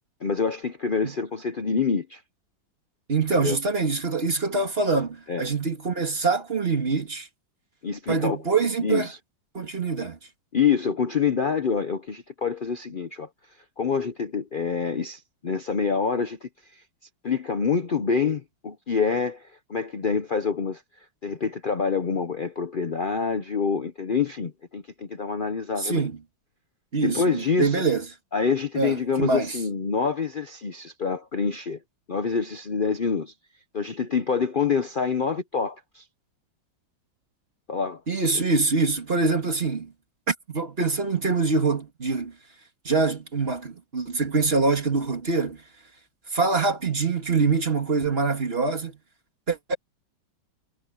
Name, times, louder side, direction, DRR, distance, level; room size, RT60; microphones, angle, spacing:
voice 1, 0.2-2.2 3.3-3.6 5.3-5.4 7.8-8.4 8.8-9.2 10.5-13.3 13.8-16.8 17.2-20.8 21.2-26.0 27.0-27.8 28.3-31.8 32.1-33.3 33.7-36.0 37.7-38.0 38.3-38.4, left 5 dB, 70° left, 0.5 m, -26 dB
voice 2, 3.1-7.3 8.1-9.1 9.5-10.2 25.8-26.2 26.9-28.0 28.8-29.6 38.1-39.9 40.3-42.3 42.8-45.6 46.3-49.0 49.5-49.8, right 4 dB, 30° right, 2.3 m, -24 dB
omnidirectional pair, 2.2 m